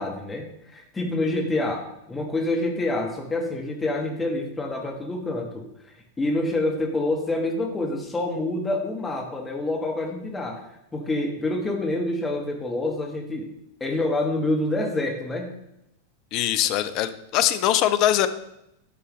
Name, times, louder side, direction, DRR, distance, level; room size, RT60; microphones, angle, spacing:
voice 1, 0.0-5.6 6.2-10.7 10.9-13.5 13.8-15.5, left 2 dB, 15° left, 1 dB, 1.2 m, -27 dB
voice 2, 16.3-18.3, left 12 dB, 40° left, 11 dB, 0.5 m, -22 dB
9.9 x 5.4 x 3.1 m, 0.81 s
figure-of-eight pair, 90°, 0 cm